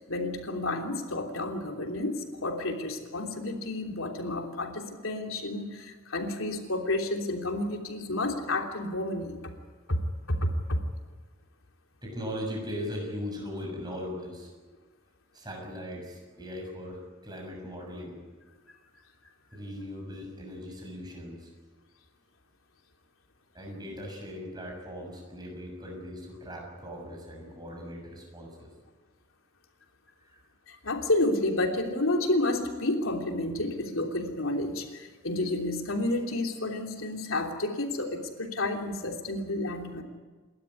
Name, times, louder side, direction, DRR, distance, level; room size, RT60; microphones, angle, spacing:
voice 1, 0.1-9.4 9.9-10.0 10.3-10.8 30.7-40.0, left 2 dB, 90° left, 2 dB, 3.2 m, -30 dB
voice 2, 12.0-14.5 15.3-18.2 19.5-21.5 23.5-28.7 30.2-30.4, equal, 20° right, 0 dB, 6.8 m, -39 dB
28.5 x 12.5 x 9.7 m, 1.4 s
head